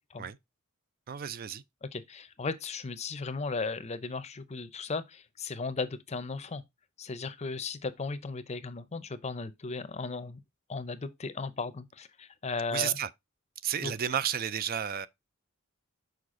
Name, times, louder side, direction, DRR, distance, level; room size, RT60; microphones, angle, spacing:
voice 1, 1.1-1.6 12.7-13.1 13.6-15.1, right 9 dB, 45° right, 0.4 m, -32 dB
voice 2, 1.8-6.6 7.0-10.4 10.7-13.0 13.8-13.9, left 4 dB, 30° left, 0.6 m, -36 dB
6.5 x 4.7 x 3.6 m
head